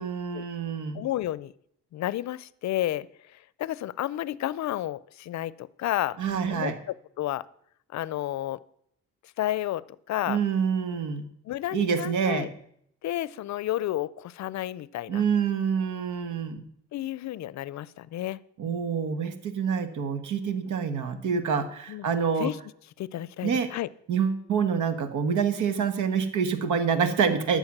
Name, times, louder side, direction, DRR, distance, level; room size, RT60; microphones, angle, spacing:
voice 1, 0.0-1.0 6.2-6.8 10.3-11.3 11.7-12.5 15.1-16.6 18.6-22.5 23.4-23.7 24.1-27.6, right 6 dB, 75° right, 11 dB, 1.4 m, -27 dB
voice 2, 0.9-1.5 1.9-3.1 3.6-6.2 6.5-7.5 7.9-8.6 9.4-9.8 10.1-10.4 11.5-12.5 13.0-15.2 16.9-18.4 21.9-22.1 22.4-22.6 23.0-23.9, left 14 dB, 65° left, 20 dB, 0.5 m, -31 dB
13.0 x 7.0 x 6.0 m, 0.70 s
cardioid pair, 90°, 30 cm